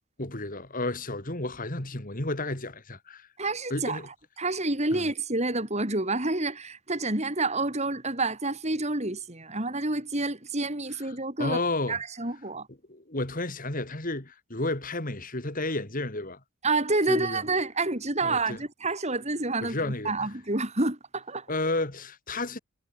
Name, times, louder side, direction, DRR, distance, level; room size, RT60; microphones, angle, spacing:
voice 1, 0.2-3.3 3.7-4.1 4.9-5.1 11.1-12.0 12.9-16.4 17.1-17.4 18.2-18.6 19.6-20.3 21.5-22.6, left 2 dB, 40° left, 3.1 m, -32 dB
voice 2, 3.4-4.0 4.4-11.6 11.9-12.7 16.6-21.5, right 2 dB, 30° right, 3.7 m, -28 dB
head